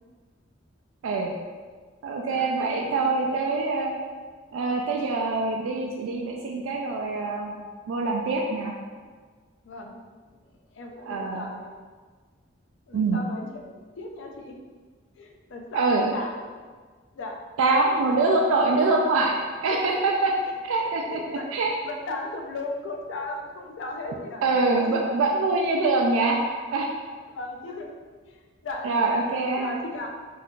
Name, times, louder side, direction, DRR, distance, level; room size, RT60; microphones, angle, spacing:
voice 1, 1.0-1.3 2.0-3.9 4.5-7.6 7.9-8.7 11.1-11.5 12.9-13.2 15.7-16.1 17.6-19.4 19.6-20.3 20.6-21.7 24.4-26.4 26.7-26.9 28.8-29.7, right 3 dB, 90° right, 0 dB, 0.3 m, -24 dB
voice 2, 9.6-10.0 10.7-11.8 12.9-14.6 15.2-16.5 17.1-17.4 19.7-20.1 20.7-21.5 21.8-24.5 24.9-25.0 27.3-27.9 28.3-30.2, left 2 dB, 70° left, 2 dB, 0.4 m, -37 dB
2.6 x 2.3 x 3.5 m, 1.5 s
head